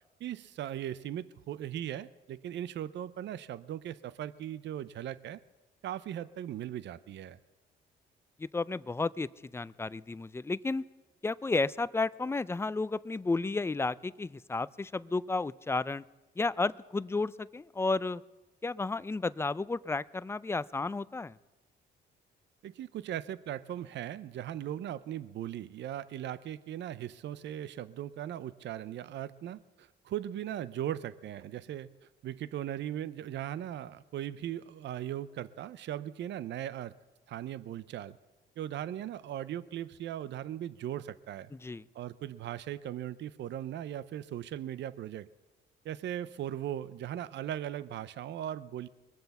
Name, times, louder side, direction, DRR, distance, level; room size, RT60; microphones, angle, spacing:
voice 1, 0.2-5.4 5.8-7.4 22.6-31.9 32.2-36.9 37.3-38.2 38.6-41.5 41.9-45.3 45.8-48.9, right 11 dB, 65° right, 17 dB, 0.6 m, -38 dB
voice 2, 8.4-10.8 11.2-16.0 16.4-18.2 18.6-21.4 41.6-41.8, left 3 dB, 15° left, 18 dB, 0.4 m, -32 dB
22.0 x 7.7 x 7.1 m, 1.2 s
cardioid pair, 90°, 20 cm